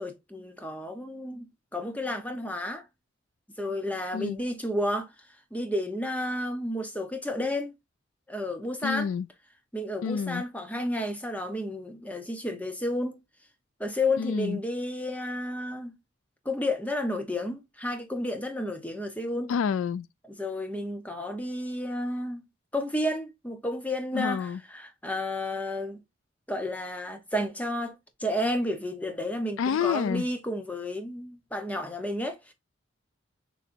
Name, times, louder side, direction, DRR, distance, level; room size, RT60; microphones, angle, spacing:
voice 1, 0.0-2.9 3.6-5.1 5.5-7.7 8.3-9.1 9.7-13.2 13.8-16.0 16.4-19.5 20.3-22.4 22.7-26.0 26.5-32.5, left 1 dB, 5° left, 0.8 m, -31 dB
voice 2, 8.8-9.3 10.0-10.4 14.2-14.6 19.5-20.1 24.1-24.6 29.6-30.3, left 7 dB, 80° left, 0.3 m, -28 dB
6.5 x 3.2 x 2.6 m
head